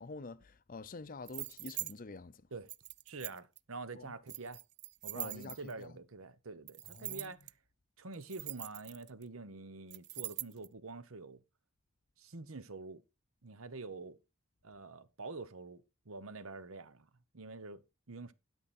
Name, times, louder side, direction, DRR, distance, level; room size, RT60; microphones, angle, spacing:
voice 1, 0.0-2.4 3.9-4.2 5.1-6.0 6.9-7.4, left 3 dB, 40° left, 0.6 m, -47 dB
sound 1, 1.3-1.9 2.7-3.6 4.3-5.8 6.7-7.5 8.1-9.2 9.9-10.7, right 18 dB, 50° right, 0.4 m, -43 dB
voice 2, 3.1-4.6 5.0-7.4 8.0-11.4 12.2-13.0 13.4-14.2 14.6-17.1 17.3-17.8 18.1-18.3, right 3 dB, 65° right, 1.0 m, -46 dB
12.0 x 6.3 x 4.3 m
head